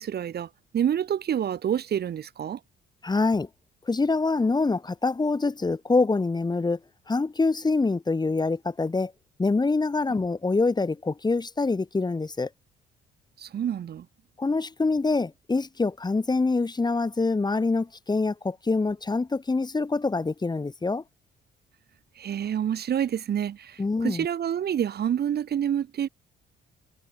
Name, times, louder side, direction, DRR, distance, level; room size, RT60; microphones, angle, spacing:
voice 1, 0.0-2.6 13.4-14.1 22.2-26.1, right 9 dB, 55° right, 1.1 m, -28 dB
voice 2, 3.0-3.5 3.9-6.8 7.1-9.1 9.4-12.5 14.4-21.0 23.8-24.3, left 3 dB, 20° left, 1.8 m, -25 dB
cardioid pair, 90°, 20 cm